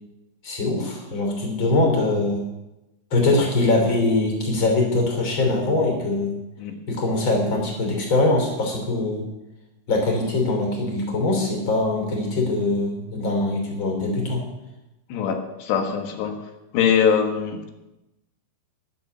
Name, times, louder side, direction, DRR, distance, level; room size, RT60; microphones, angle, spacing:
voice 1, 0.4-2.4 3.1-6.4 6.9-9.2 9.9-14.4, left 2 dB, 30° left, 2 dB, 3.2 m, -22 dB
voice 2, 15.1-16.4 16.7-17.7, left 7 dB, 70° left, 5 dB, 3.3 m, -22 dB
11.5 x 11.0 x 6.9 m, 0.96 s
omnidirectional pair, 5.6 m